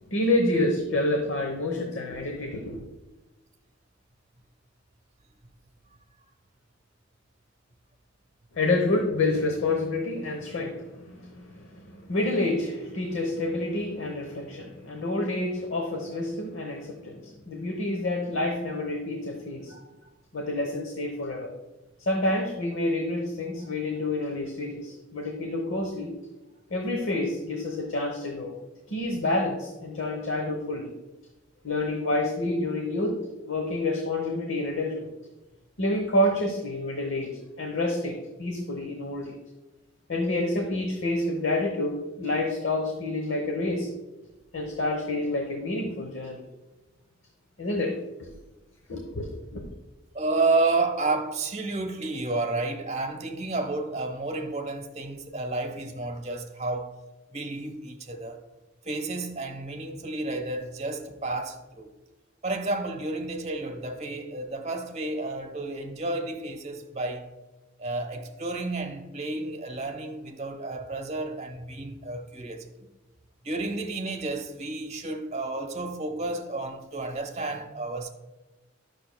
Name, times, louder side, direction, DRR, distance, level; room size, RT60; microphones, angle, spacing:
voice 1, 0.0-2.8 8.5-19.7 20.3-21.5 22.1-26.2 26.7-28.5 28.9-30.9 31.6-33.2 33.5-35.1 35.8-37.3 37.6-39.4 40.1-43.9 44.5-46.4 47.6-48.0 48.9-49.6, left 2 dB, 70° left, 0.9 m, -28 dB
voice 2, 50.1-57.0 57.3-58.4 58.8-61.9 62.4-67.3 67.8-72.9 73.4-78.1, right 2 dB, 35° right, 1.0 m, -31 dB
10.5 x 6.5 x 2.2 m
head